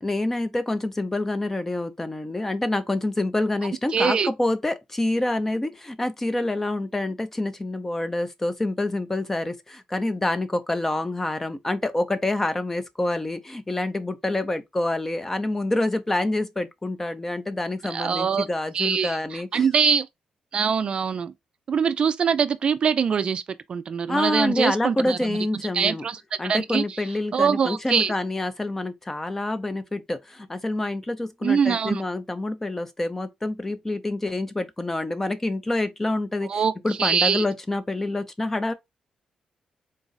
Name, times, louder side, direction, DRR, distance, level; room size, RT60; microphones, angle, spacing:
voice 1, 0.0-19.7 24.1-26.0 26.4-38.7, left 2 dB, 15° left, 0.5 m, -27 dB
voice 2, 3.9-4.3 17.9-18.5 18.7-20.1 20.5-21.3 21.7-23.4 23.7-25.4 25.7-27.0 27.3-28.1 31.4-32.0 36.5-36.7 37.0-37.4, right 6 dB, 45° right, 0.4 m, -23 dB
3.9 x 2.4 x 3.9 m
cardioid pair, 115°, 2 cm